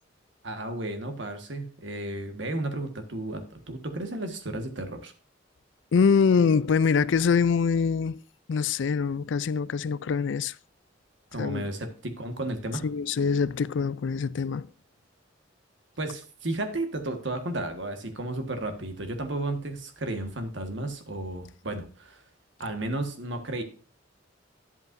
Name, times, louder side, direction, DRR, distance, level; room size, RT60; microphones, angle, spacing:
voice 1, 0.4-5.1 11.3-12.9 16.0-22.2 22.6-23.6, right 2 dB, 70° right, 1.6 m, -33 dB
voice 2, 5.9-8.2 8.5-10.5 11.4-11.6 12.8-14.7, left 5 dB, 70° left, 0.4 m, -24 dB
10.5 x 8.1 x 2.6 m
head